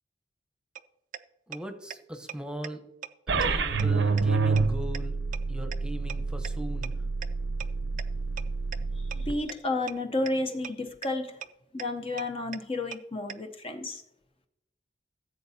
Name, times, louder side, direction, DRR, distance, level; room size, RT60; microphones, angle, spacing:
sound 1, 0.7-0.8 1.1-1.2 1.5-1.6 1.9-2.0 2.3-2.4 2.6-2.7 3.0-3.1 3.4-3.5 3.8-3.9 4.2-4.3 4.6-4.7 4.9-5.0 5.3-5.4 5.7-5.8 6.1-6.2 6.4-6.5 6.8-6.9 7.2-7.3 7.6-7.7 8.0-8.1 8.4-8.5 8.7-8.8 9.1-9.2 9.5-9.6 9.9-10.0 10.3-10.4 10.6-10.7 11.0-11.1 11.4-11.5 11.8-11.9 12.2-12.3 12.5-12.6 12.9-13.0 13.3-13.4, right 9 dB, 45° right, 0.4 m, -37 dB
voice 1, 1.5-2.8 3.3-5.2 5.5-7.0, equal, 5° right, 5 dB, 0.9 m, -38 dB
sound 2, 3.3-9.3, right 4 dB, 80° right, 0.8 m, -28 dB
voice 2, 9.0-11.4 11.7-14.0, left 2 dB, 30° left, 5 dB, 0.7 m, -32 dB
15.0 x 7.8 x 2.8 m, 0.84 s
head